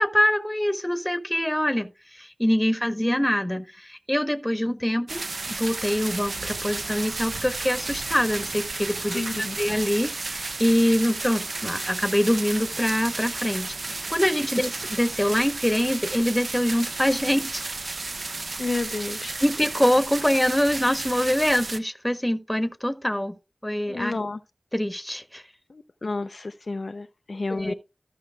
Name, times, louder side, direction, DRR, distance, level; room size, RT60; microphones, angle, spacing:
voice 1, 0.0-17.6 19.4-23.3 23.6-24.2 24.7-25.4 27.5-27.7, equal, 10° left, 1.2 m, -24 dB
sound 1, 5.1-21.8, right 3 dB, 75° right, 0.7 m, -33 dB
voice 2, 9.1-9.6 18.6-19.4 23.9-24.4 25.7-27.7, left 3 dB, 70° left, 0.6 m, -31 dB
14.0 x 5.6 x 3.5 m
wide cardioid pair, 40°, 0 cm